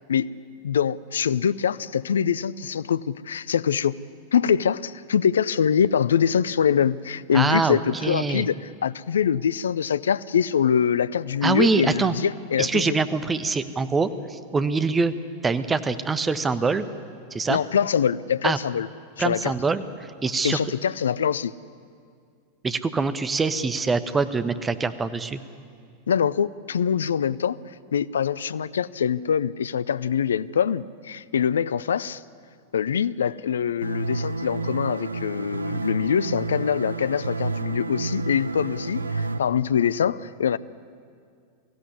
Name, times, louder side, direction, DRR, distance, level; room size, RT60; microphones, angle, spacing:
voice 1, 0.6-4.0 4.3-13.0 17.5-18.9 19.2-19.5 20.4-21.5 26.1-27.6 27.9-32.2 32.7-40.6, left 8 dB, 65° left, 18 dB, 0.5 m, -24 dB
voice 2, 7.3-8.4 11.4-12.1 12.6-15.1 15.4-16.9 17.3-17.6 18.4-18.6 19.2-19.8 20.2-20.6 22.6-25.4, right 4 dB, 15° right, 12 dB, 1.1 m, -24 dB
sound 1, 33.8-39.4, right 3 dB, 75° right, 0.8 m, -30 dB
22.5 x 16.0 x 9.7 m, 2.2 s
figure-of-eight pair, 90°, 0 cm